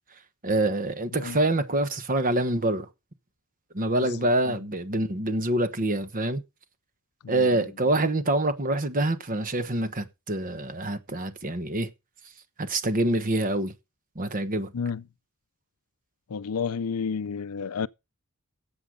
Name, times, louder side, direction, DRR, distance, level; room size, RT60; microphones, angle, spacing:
voice 1, 0.4-2.9 3.7-6.4 7.3-11.9 12.6-13.7 14.1-14.7, right 1 dB, 40° right, 1.2 m, -26 dB
voice 2, 16.3-17.9, left 6 dB, 80° left, 0.5 m, -30 dB
12.5 x 8.1 x 5.2 m
head